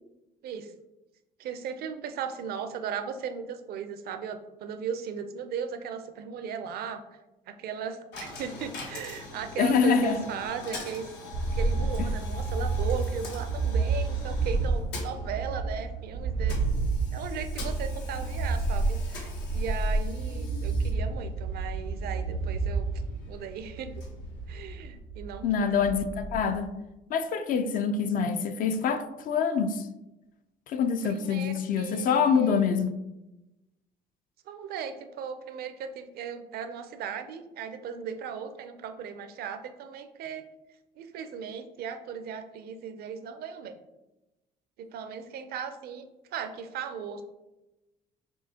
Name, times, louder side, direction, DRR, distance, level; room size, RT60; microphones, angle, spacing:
voice 1, 1.4-7.0 7.5-11.1 11.5-16.6 17.1-22.9 23.3-23.9 24.5-25.7 31.0-32.8 34.5-40.4 41.0-43.8 44.8-47.2, right 7 dB, 65° right, 0.5 m, -37 dB
Coin (dropping), 8.1-25.1, left 3 dB, 85° left, 1.0 m, -44 dB
voice 2, 9.6-10.2 25.4-26.7 27.1-29.9 30.7-32.9, left 6 dB, 55° left, 0.4 m, -25 dB
sound 1, 11.3-26.6, right 3 dB, 90° right, 0.8 m, -30 dB
6.2 x 2.8 x 2.8 m
cardioid pair, 110°, 17 cm